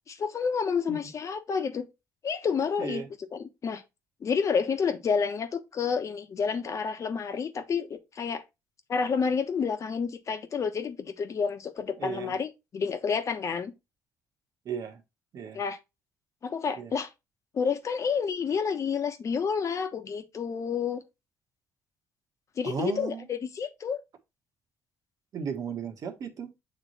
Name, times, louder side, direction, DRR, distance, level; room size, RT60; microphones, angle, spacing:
voice 1, 0.1-1.9 2.2-3.0 3.3-3.8 4.2-8.4 8.9-13.7 15.5-15.8 16.4-17.1 17.5-21.0 22.6-24.0, left 6 dB, 50° left, 1.1 m, -29 dB
voice 2, 12.0-12.4 14.6-15.0 15.3-15.6 16.7-16.9 22.6-23.3 25.3-26.5, right 6 dB, 60° right, 1.3 m, -35 dB
7.3 x 3.3 x 4.1 m
supercardioid pair, 75°, 7 cm